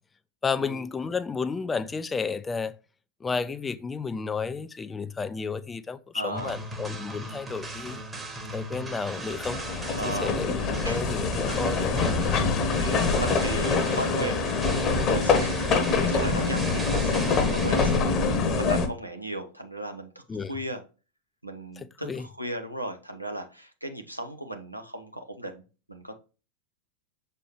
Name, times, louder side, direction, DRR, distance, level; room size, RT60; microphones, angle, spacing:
voice 1, 0.4-2.7 3.2-8.0 8.5-9.6 10.0-12.3 20.3-20.5 21.8-22.3, left 5 dB, 15° left, 0.4 m, -32 dB
voice 2, 6.1-6.6 10.0-10.4 10.8-11.0 12.8-14.5 15.1-18.1 18.6-20.8 21.4-25.6 25.9-26.2, right 1 dB, 90° right, 1.0 m, -36 dB
sound 1, 6.3-18.0, right 2 dB, 15° right, 1.2 m, -38 dB
sound 2, 9.1-18.9, left 4 dB, 30° left, 1.0 m, -25 dB
6.9 x 4.4 x 3.1 m
figure-of-eight pair, 90°, 0 cm